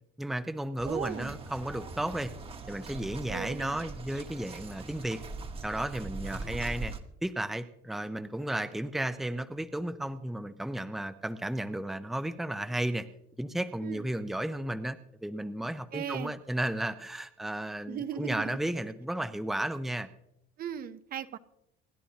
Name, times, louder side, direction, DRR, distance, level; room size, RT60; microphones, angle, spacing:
voice 1, 0.2-2.3 2.7-5.2 5.6-6.9 7.2-13.1 13.4-20.1, right 1 dB, ahead, 9 dB, 0.6 m, -33 dB
sound 1, 0.8-7.0, right 3 dB, 25° right, 1.2 m, -41 dB
voice 2, 0.8-1.4 3.3-3.8 6.4-6.6 13.8-14.1 15.9-16.3 17.9-18.6 20.6-21.4, right 9 dB, 45° right, 12 dB, 0.7 m, -37 dB
27.5 x 11.0 x 2.8 m, 0.81 s
cardioid pair, 130°, 21 cm